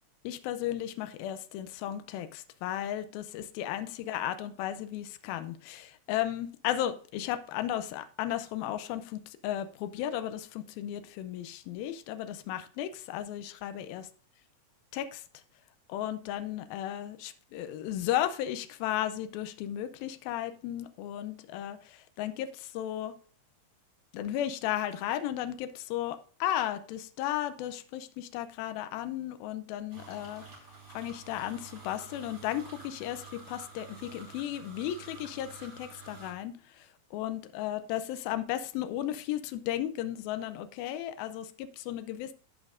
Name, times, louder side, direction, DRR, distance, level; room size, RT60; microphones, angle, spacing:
voice 1, 0.2-14.1 14.9-15.2 15.9-23.1 24.1-30.4 30.9-42.3, left 12 dB, 85° left, 2.4 m, -35 dB
sound 1, 29.9-36.3, right 4 dB, 35° right, 3.9 m, -49 dB
14.0 x 5.3 x 2.5 m
omnidirectional pair, 4.2 m